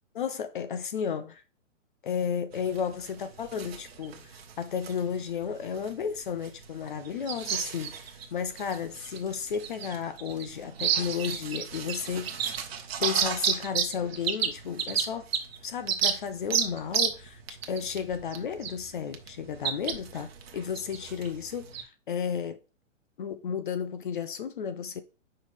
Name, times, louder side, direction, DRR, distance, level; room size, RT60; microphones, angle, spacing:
voice 1, 0.1-1.3 2.0-12.3 13.0-15.3 15.6-22.6 23.2-25.0, left 7 dB, 40° left, 0.6 m, -33 dB
sound 1, 2.5-21.8, right 8 dB, 50° right, 1.2 m, -33 dB
6.2 x 5.5 x 3.3 m
hypercardioid pair, 160°, 39 cm